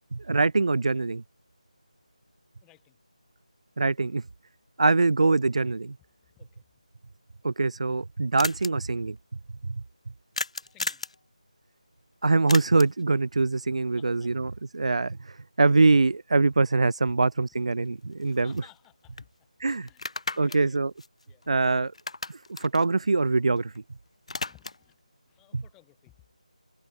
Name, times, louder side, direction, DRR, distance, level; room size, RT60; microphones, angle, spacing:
voice 1, 0.1-1.2 3.8-4.2 4.8-5.9 7.4-9.2 9.7-9.8 12.2-18.5 19.6-19.9 20.4-20.9 21.5-21.9 22.3-23.7 25.5-25.6, right 3 dB, 55° right, 0.4 m, -23 dB
voice 2, 2.6-3.0 6.3-6.8 10.6-11.0 14.0-14.4 18.4-20.8 21.3-21.5 24.3-25.0 25.3-26.2, left 19 dB, 10° left, 6.6 m, -59 dB
sound 1, 7.4-7.5 7.7-7.8 8.0-8.1 8.4-8.7 10.3-11.2 12.5-13.0 17.2-17.3 17.7-18.9 19.2-19.3 19.9-21.7 21.9-23.8 24.1-24.9, left 3 dB, 55° left, 3.0 m, -35 dB
figure-of-eight pair, 160°, 4 cm